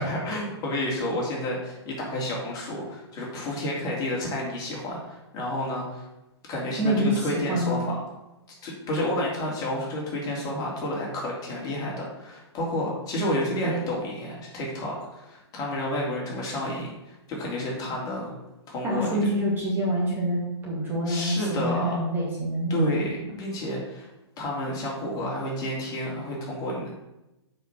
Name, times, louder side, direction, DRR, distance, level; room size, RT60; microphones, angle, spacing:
voice 1, 0.0-6.1 6.5-8.0 8.6-18.3 18.7-19.2 21.1-21.9 22.7-24.1 24.4-26.9, left 1 dB, 25° left, -3 dB, 3.1 m, -30 dB
voice 2, 6.8-7.8 18.8-23.1, equal, 15° right, -5 dB, 2.4 m, -26 dB
8.0 x 5.4 x 6.0 m, 0.95 s
figure-of-eight pair, 115°, 15 cm